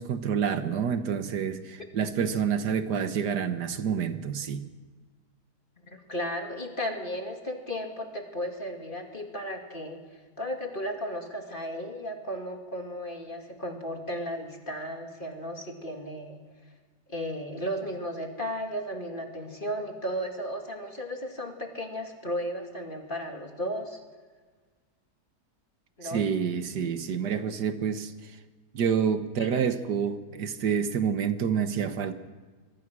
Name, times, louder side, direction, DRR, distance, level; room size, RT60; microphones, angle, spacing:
voice 1, 0.0-4.6 26.0-28.1 28.7-32.1, right 7 dB, 80° right, 1.8 m, -28 dB
voice 2, 5.8-10.0 10.4-16.4 17.1-24.0 26.0-26.2 29.4-29.5, equal, 30° left, 2.8 m, -34 dB
25.0 x 23.5 x 6.2 m
omnidirectional pair, 1.8 m